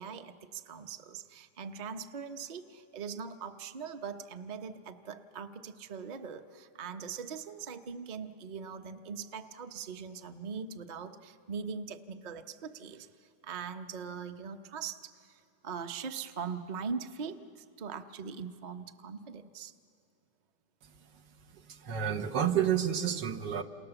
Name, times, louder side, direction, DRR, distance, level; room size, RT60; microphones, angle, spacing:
voice 1, 0.0-19.8, right 6 dB, 35° right, 8 dB, 0.7 m, -41 dB
voice 2, 21.8-23.6, right 9 dB, 80° right, 7 dB, 1.7 m, -29 dB
29.5 x 28.5 x 7.0 m, 2.4 s
omnidirectional pair, 1.9 m